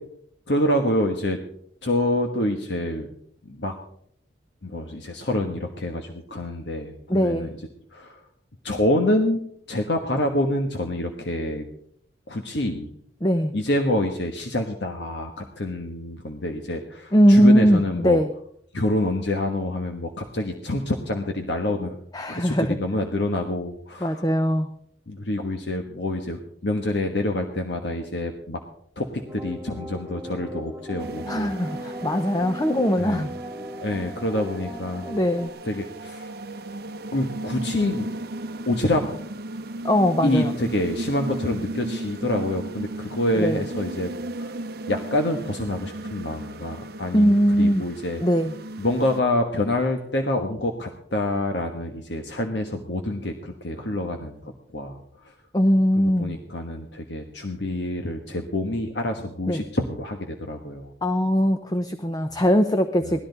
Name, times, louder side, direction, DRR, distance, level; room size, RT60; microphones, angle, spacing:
voice 1, 0.5-1.4 1.8-3.1 3.4-3.7 4.6-7.5 7.9-8.2 8.6-9.4 9.7-11.6 12.3-12.9 13.5-18.2 18.7-22.0 22.3-24.2 25.1-28.6 29.0-31.9 33.0-33.3 33.8-35.1 35.6-36.3 37.1-38.1 38.7-39.0 40.2-44.1 44.4-44.5 44.9-48.2 48.8-55.3 56.0-60.9 62.3-62.4 63.0-63.2, left 1 dB, 70° left, 3 dB, 1.4 m, -27 dB
voice 2, 7.1-7.5 13.2-13.5 17.1-18.3 22.1-22.8 24.0-24.7 31.3-33.3 35.0-35.5 39.8-40.5 43.4-43.6 47.1-47.8 48.2-48.5 55.5-56.4 59.5-59.6 61.0-63.2, equal, 20° left, 8 dB, 0.7 m, -20 dB
sound 1, 29.3-35.5, equal, 10° right, 2.2 m, -37 dB
sound 2, 31.0-49.2, right 1 dB, 55° right, 0.7 m, -36 dB
18.5 x 13.0 x 4.0 m, 0.66 s
head